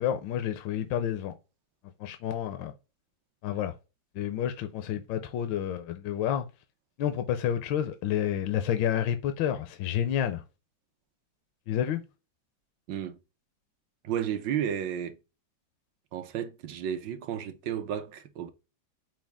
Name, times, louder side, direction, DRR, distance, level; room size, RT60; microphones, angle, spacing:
voice 1, 0.0-1.3 2.0-2.7 3.4-3.7 4.2-6.5 7.0-10.4 11.7-12.0, left 10 dB, 80° left, 1.3 m, -29 dB
voice 2, 12.9-13.2 14.0-15.2 16.1-18.5, right 9 dB, 75° right, 1.3 m, -32 dB
6.0 x 2.3 x 3.4 m
omnidirectional pair, 2.1 m